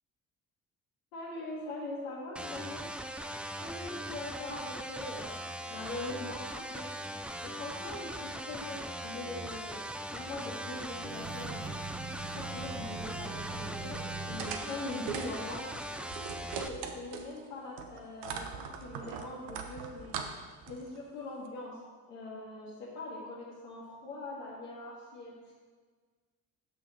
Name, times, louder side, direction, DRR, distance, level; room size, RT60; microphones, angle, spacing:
voice 1, 1.1-2.9 3.6-9.8 10.1-11.6 12.3-15.7 16.4-20.2 20.7-21.8 22.1-25.5, left 2 dB, 85° left, -8 dB, 1.4 m, -42 dB
sound 1, 2.4-16.7, equal, 5° right, 0.4 m, -40 dB
sound 2, 10.9-14.6, right 4 dB, 35° right, 0.9 m, -42 dB
sound 3, 14.4-17.4 17.8-21.0, right 6 dB, 75° right, 0.7 m, -41 dB
6.5 x 6.1 x 4.1 m, 1.5 s
hypercardioid pair, 45°, 41 cm